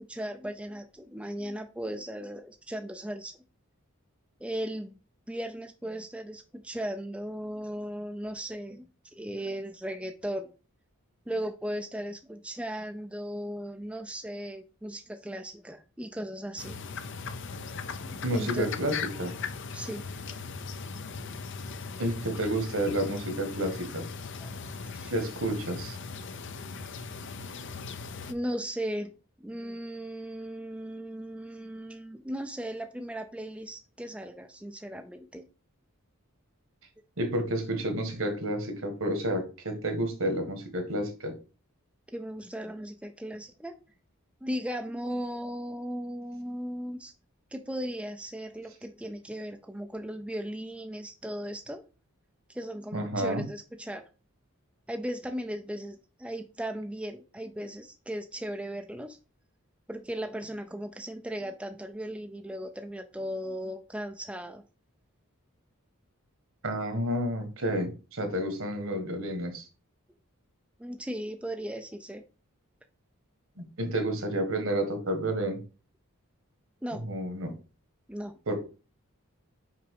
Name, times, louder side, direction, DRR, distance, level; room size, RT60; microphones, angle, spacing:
voice 1, 0.0-3.3 4.4-5.0 5.3-10.5 11.3-16.8 18.0-18.7 19.7-20.0 21.9-22.0 24.4-25.1 28.3-29.1 29.4-35.5 42.1-43.8 44.4-47.1 47.5-51.8 52.5-54.0 54.9-59.2 59.9-64.6 70.8-72.2 76.8-77.0 78.1-78.4, equal, 5° right, 6 dB, 0.5 m, -37 dB
sound 1, 16.6-28.3, left 5 dB, 55° left, 0.7 m, -39 dB
voice 2, 18.2-19.3 22.0-24.1 25.1-26.0 37.2-41.3 52.9-53.4 66.6-69.6 73.6-75.6 77.0-77.5 78.5-78.6, right 1 dB, 65° right, 7 dB, 1.7 m, -30 dB
6.0 x 5.1 x 4.8 m, 0.34 s
head